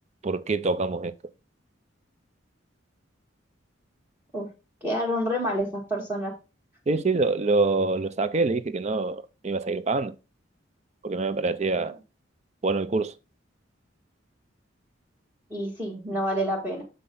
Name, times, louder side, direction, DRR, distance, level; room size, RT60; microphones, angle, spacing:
voice 1, 0.2-1.1 6.9-10.1 11.0-12.0 12.6-13.1, right 3 dB, 35° right, 0.5 m, -25 dB
voice 2, 4.8-6.3 15.5-16.8, equal, 15° right, 1.4 m, -28 dB
6.6 x 6.0 x 3.7 m
head